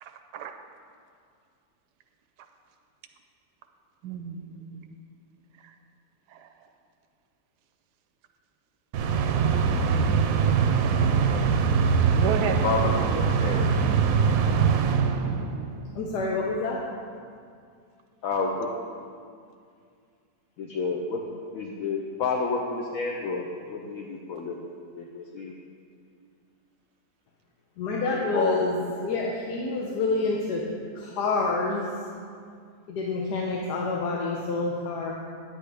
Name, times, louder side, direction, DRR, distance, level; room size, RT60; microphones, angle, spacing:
voice 1, 0.0-0.5 4.0-4.9 6.3-6.5 9.9-10.0 12.1-13.2 15.2-15.7, right 7 dB, 90° right, 6 dB, 1.2 m, -33 dB
sound 1, 8.9-15.7, right 6 dB, 70° right, 0.9 m, -23 dB
voice 2, 12.4-13.7 18.2-18.7 20.6-21.2 21.5-24.6 25.0-25.5 28.1-28.9, left 4 dB, 65° left, 0 dB, 1.0 m, -29 dB
voice 3, 15.9-16.9 27.8-28.7 29.0-30.6 30.9-31.9 32.9-35.1, left 3 dB, 90° left, -2 dB, 1.4 m, -28 dB
10.0 x 9.1 x 3.4 m, 2.2 s
omnidirectional pair, 1.7 m